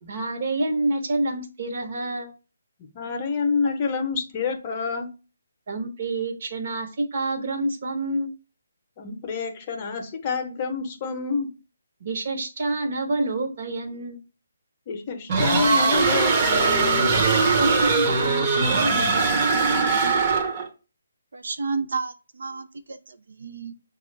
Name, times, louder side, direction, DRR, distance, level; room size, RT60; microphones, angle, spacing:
voice 1, 0.0-2.3 5.7-8.3 12.0-14.2 17.6-20.2, right 2 dB, 50° right, 3 dB, 1.0 m, -28 dB
voice 2, 2.8-5.1 9.0-11.5 14.9-17.4, left 5 dB, 30° left, 5 dB, 0.7 m, -28 dB
sound 1, 15.3-20.7, right 4 dB, 30° right, 0.8 m, -21 dB
voice 3, 21.3-23.7, right 4 dB, 75° right, 9 dB, 0.4 m, -31 dB
5.8 x 2.3 x 3.2 m, 0.33 s
figure-of-eight pair, 150°, 0 cm